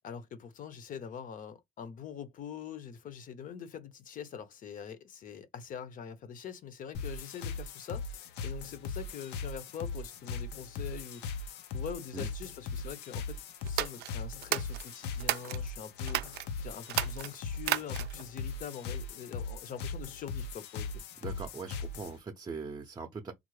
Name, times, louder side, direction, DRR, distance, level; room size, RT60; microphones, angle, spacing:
voice 1, 0.0-21.0, left 7 dB, 55° left, 0.7 m, -44 dB
sound 1, 6.9-22.2, left 4 dB, 90° left, 0.5 m, -39 dB
sound 2, 13.6-15.6 16.0-16.5 16.8-18.3, right 14 dB, 75° right, 0.4 m, -33 dB
voice 2, 21.2-23.3, right 4 dB, 25° right, 0.6 m, -41 dB
3.7 x 2.0 x 3.1 m
cardioid pair, 110°, 17 cm